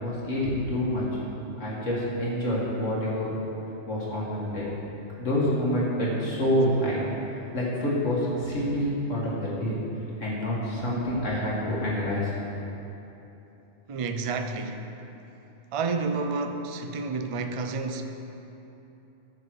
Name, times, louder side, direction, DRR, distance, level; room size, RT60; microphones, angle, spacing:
voice 1, 0.0-1.0 1.6-3.3 3.9-4.7 5.2-7.0 7.5-9.8 10.2-12.3, equal, 75° left, -6 dB, 2.6 m, -27 dB
voice 2, 13.9-14.9 15.7-18.0, right 4 dB, 45° right, 6 dB, 0.4 m, -30 dB
14.0 x 6.9 x 4.8 m, 3.0 s
omnidirectional pair, 1.3 m